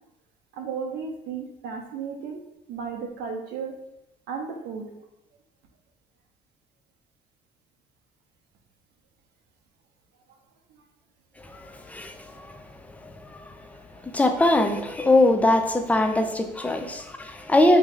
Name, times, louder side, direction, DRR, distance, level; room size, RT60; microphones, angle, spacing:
voice 1, 0.5-2.4 2.7-3.7 4.3-4.9 13.9-14.0, right 5 dB, 80° right, 3 dB, 0.7 m, -34 dB
voice 2, 11.4-12.6 12.9-13.7 14.0-17.8, left 1 dB, 10° left, 6 dB, 0.4 m, -22 dB
3.1 x 2.8 x 3.7 m, 0.86 s
cardioid pair, 110°, 17 cm